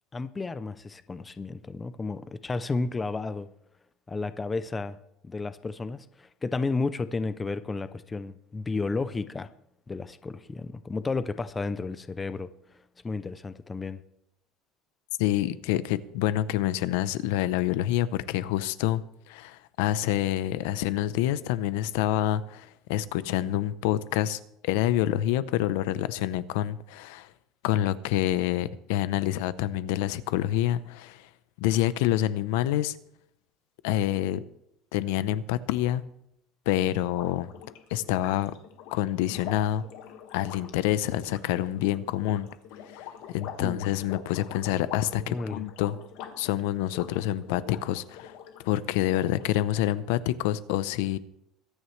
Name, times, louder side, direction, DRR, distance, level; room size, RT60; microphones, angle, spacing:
voice 1, 0.1-3.5 4.1-5.0 5.2-9.5 9.9-12.5 13.0-14.0 43.6-43.8 45.3-45.7, left 3 dB, 10° left, 0.4 m, -32 dB
voice 2, 15.2-27.3 27.6-31.3 31.6-32.9 33.8-34.4 34.9-36.0 36.7-37.5 37.9-38.5 38.9-39.8 40.3-42.5 42.8-46.0 46.4-48.4 48.6-51.2, left 13 dB, 85° left, 0.7 m, -27 dB
sound 1, 37.0-48.6 49.0-49.8, left 8 dB, 60° left, 1.6 m, -45 dB
22.5 x 9.6 x 3.2 m
cardioid pair, 180°, 0 cm